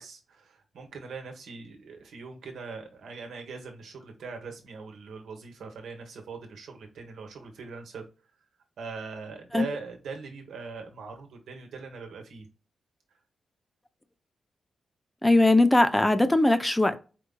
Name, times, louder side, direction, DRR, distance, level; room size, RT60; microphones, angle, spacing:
voice 1, 0.0-8.1 8.8-12.5, right 4 dB, 85° right, 1.1 m, -41 dB
voice 2, 15.2-17.0, left 2 dB, 10° left, 0.5 m, -20 dB
4.7 x 3.6 x 2.2 m
cardioid pair, 65°, 0 cm